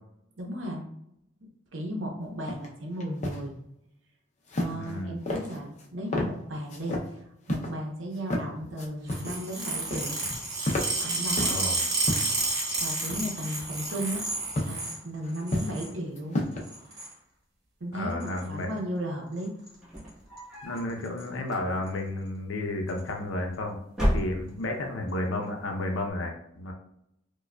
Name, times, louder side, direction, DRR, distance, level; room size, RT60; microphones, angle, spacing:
voice 1, 0.4-0.8 1.7-3.5 4.6-10.4 11.0-11.6 12.8-14.2 14.6-16.4 17.8-19.5, equal, 75° right, 0 dB, 0.8 m, -35 dB
sound 1, 2.5-2.7 3.0-3.4 4.5-4.9 5.2-5.8 6.1-6.3 6.7-7.1 7.5-7.7 8.2-8.4 8.8-9.4 9.6-10.2 10.5-11.6 12.0-12.4 13.1-13.5 14.5-14.8 15.2-15.8 16.1-16.6, left 1 dB, 35° left, 0.5 m, -31 dB
voice 2, 4.7-5.2 11.4-11.8 17.9-18.7 20.6-23.8 24.1-26.7, left 1 dB, 80° left, 3 dB, 0.6 m, -32 dB
sound 2, 9.1-15.0 15.3-15.9 16.6-17.1 18.2-18.4 19.4-19.7 20.0-20.1 20.4-20.5 20.8-21.2 21.9-22.0 22.9-23.0, right 2 dB, 50° right, 1.2 m, -31 dB
sound 3, 19.7-20.9 21.4-22.1 23.0-23.5 23.9-24.8, equal, ahead, 1.1 m, -31 dB
4.7 x 2.3 x 2.2 m, 0.78 s
head